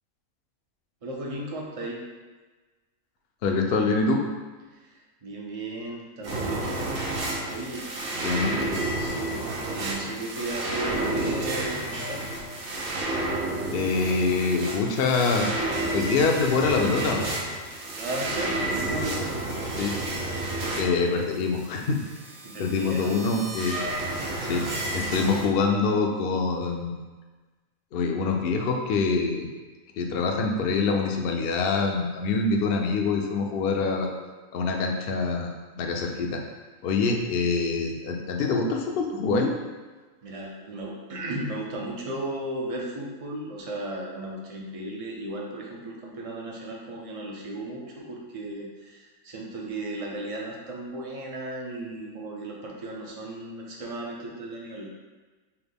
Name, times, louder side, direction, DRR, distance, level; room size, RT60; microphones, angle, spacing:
voice 1, 1.0-2.0 4.8-6.9 7.5-7.9 8.5-12.2 18.0-19.3 22.4-23.1 40.2-54.9, right 2 dB, 60° right, -2 dB, 0.3 m, -35 dB
voice 2, 3.4-4.2 8.2-8.5 13.7-15.5 15.9-17.3 19.8-20.0 20.8-22.0 22.6-23.8 24.4-24.7 24.9-27.1 27.9-29.5 30.0-34.1 34.5-35.5 35.8-36.4 36.8-39.5, left 4 dB, 65° left, 2 dB, 0.6 m, -25 dB
sound 1, 6.2-25.4, right 2 dB, 90° right, 1.3 m, -31 dB
5.7 x 2.2 x 3.4 m, 1.3 s
omnidirectional pair, 1.5 m